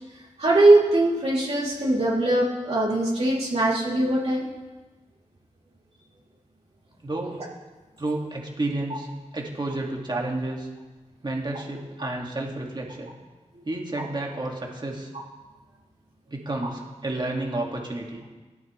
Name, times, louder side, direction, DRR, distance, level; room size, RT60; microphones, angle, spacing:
voice 1, 0.4-4.5, right 2 dB, 55° right, -6 dB, 3.6 m, -21 dB
voice 2, 7.0-7.3 8.0-9.1 9.3-10.7 11.2-13.1 13.6-15.1 16.3-18.2, right 2 dB, 35° right, -1 dB, 2.5 m, -30 dB
18.5 x 13.5 x 3.5 m, 1.2 s
wide cardioid pair, 105°, 12 cm